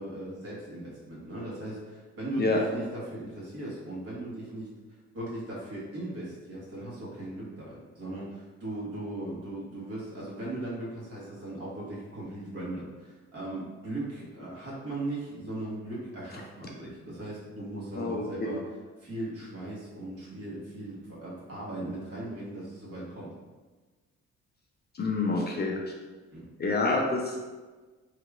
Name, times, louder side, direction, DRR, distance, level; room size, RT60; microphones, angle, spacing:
voice 1, 0.0-4.7 5.1-18.6 19.0-23.3 26.3-26.5, right 1 dB, 50° right, -7 dB, 1.4 m, -38 dB
voice 2, 24.9-25.8 26.6-27.4, left 3 dB, 35° left, 0 dB, 0.5 m, -27 dB
3.4 x 2.9 x 2.4 m, 1.3 s
cardioid pair, 90°, 30 cm